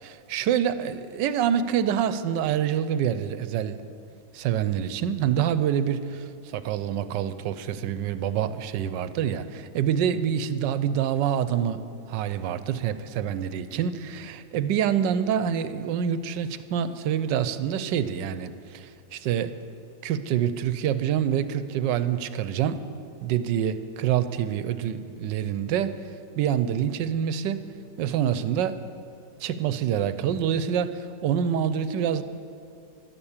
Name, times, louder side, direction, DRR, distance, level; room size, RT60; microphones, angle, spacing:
voice 1, 0.0-3.8 4.3-19.6 20.0-22.8 23.2-26.0 26.4-27.7 28.0-28.8 29.4-32.2, right 9 dB, 80° right, 13 dB, 1.3 m, -26 dB
12.0 x 11.5 x 7.2 m, 2.5 s
omnidirectional pair, 1.9 m